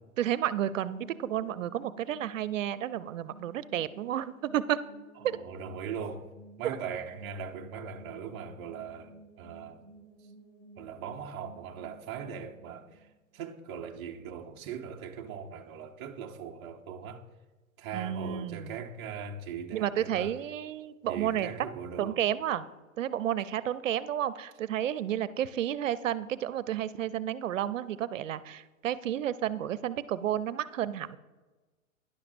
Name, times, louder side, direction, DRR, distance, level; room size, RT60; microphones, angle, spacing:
voice 1, 0.2-4.8 5.2-5.4 6.6-6.8 17.9-18.8 19.7-21.5 22.0-22.7 23.0-31.2, right 11 dB, 65° right, 0.6 m, -31 dB
sound 1, 0.9-13.8, right 2 dB, 20° left, 2.6 m, -54 dB
voice 2, 5.3-6.3 6.6-9.8 10.8-13.1 13.3-17.2 17.8-20.3 21.0-22.2, right 6 dB, 20° right, 0.4 m, -40 dB
11.5 x 10.5 x 2.6 m
hypercardioid pair, 120°, 42 cm